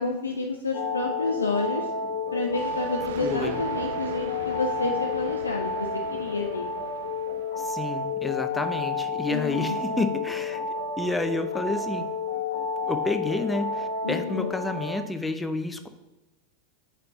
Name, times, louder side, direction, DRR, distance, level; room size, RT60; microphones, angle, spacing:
voice 1, 0.0-1.9 2.3-6.7 9.3-10.1 14.0-14.5, left 3 dB, 80° left, 2 dB, 0.5 m, -30 dB
sound 1, 0.7-15.0, left 4 dB, 60° left, 0.9 m, -31 dB
Thunder, 2.5-7.8, right 9 dB, 60° right, 0.3 m, -42 dB
voice 2, 3.2-3.6 7.6-10.6 11.0-12.1 12.9-15.9, left 2 dB, 10° left, 8 dB, 0.5 m, -30 dB
5.1 x 4.3 x 5.7 m, 1.1 s
figure-of-eight pair, 85°, 0 cm